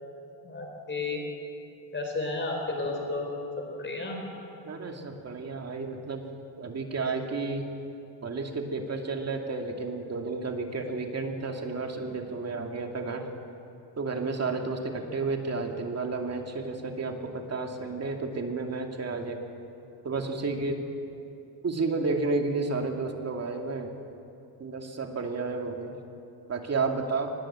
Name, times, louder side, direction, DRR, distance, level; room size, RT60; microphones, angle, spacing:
voice 1, 0.4-1.2 1.9-3.3 3.6-4.2, left 3 dB, 25° left, 2 dB, 4.2 m, -32 dB
voice 2, 4.7-6.2 6.6-7.7 8.2-13.3 14.0-19.4 20.0-20.8 21.6-23.9 24.6-26.0 26.5-27.3, right 3 dB, 35° right, 3 dB, 2.5 m, -31 dB
23.5 x 20.0 x 7.6 m, 2.7 s
cardioid pair, 135°, 45 cm